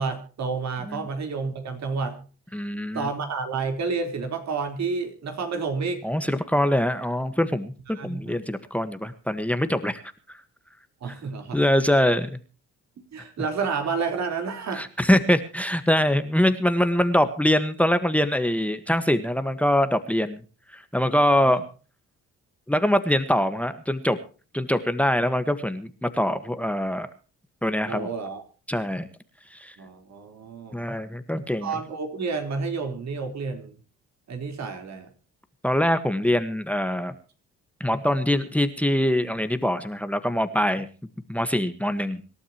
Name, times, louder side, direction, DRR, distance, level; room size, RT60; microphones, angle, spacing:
voice 1, 0.0-2.2 2.9-6.0 7.9-8.4 11.0-11.6 13.1-14.9 21.2-21.6 27.9-28.4 29.8-30.9 31.6-33.8 34.3-35.1, right 4 dB, 60° right, 6 dB, 4.2 m, -30 dB
voice 2, 2.5-3.1 6.0-10.0 10.3-10.4 11.5-12.4 14.7-20.4 20.7-21.6 22.7-24.2 24.5-27.1 27.6-28.1 28.7-29.1 29.5-29.8 30.7-31.8 35.6-37.1 37.8-40.9 41.3-42.2, left 1 dB, 5° left, 11 dB, 1.5 m, -23 dB
26.0 x 12.5 x 3.0 m, 0.37 s
cardioid pair, 90°, 30 cm